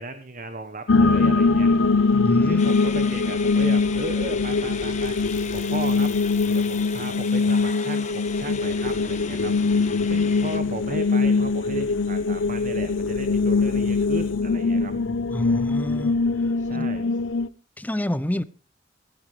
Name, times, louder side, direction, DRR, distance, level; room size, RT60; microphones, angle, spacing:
voice 1, 0.0-1.7 2.4-6.1 6.5-14.9 16.6-17.1, right 2 dB, 40° right, 1.2 m, -36 dB
sound 1, 0.9-17.5, left 4 dB, 75° left, 0.8 m, -22 dB
voice 2, 2.1-2.6 15.3-16.1 16.7-16.9 17.8-18.4, left 1 dB, 10° left, 0.7 m, -28 dB
sound 2, 2.6-11.2, left 6 dB, 35° left, 1.5 m, -38 dB
18.0 x 15.0 x 3.3 m
head